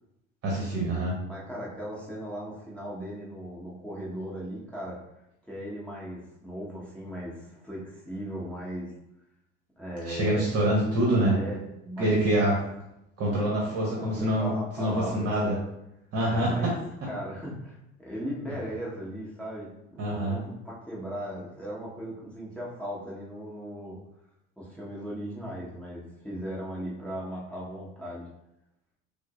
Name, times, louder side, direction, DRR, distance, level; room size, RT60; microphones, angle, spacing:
voice 1, 0.4-1.1 10.1-11.4 12.0-12.6 13.2-14.5 14.8-15.5 16.1-16.5 20.0-20.4, right 1 dB, 40° right, -2 dB, 1.0 m, -25 dB
voice 2, 1.3-5.0 5.5-8.9 9.8-10.5 11.3-12.2 13.5-15.6 16.3-16.8 17.0-24.0 24.6-28.3, equal, 5° left, -7 dB, 1.1 m, -37 dB
6.0 x 2.1 x 2.4 m, 0.86 s
figure-of-eight pair, 70°, 40 cm